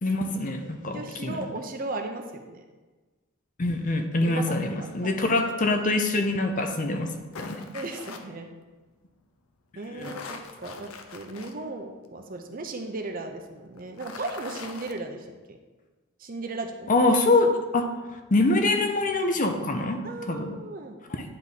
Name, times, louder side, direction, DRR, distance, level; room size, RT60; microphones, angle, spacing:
voice 1, 0.0-1.4 3.6-7.6 9.9-10.1 16.9-20.0 20.3-20.5 21.1-21.2, left 2 dB, 40° left, 5 dB, 0.6 m, -25 dB
voice 2, 0.9-2.6 4.2-5.1 7.7-8.5 9.8-15.6 16.2-16.9 20.0-21.0, right 2 dB, 40° right, 5 dB, 0.6 m, -36 dB
sound 1, 6.6-8.2 9.8-11.5 12.0-12.1 13.8-15.0, left 4 dB, 85° left, 0.6 m, -42 dB
9.8 x 3.6 x 4.1 m, 1.3 s
head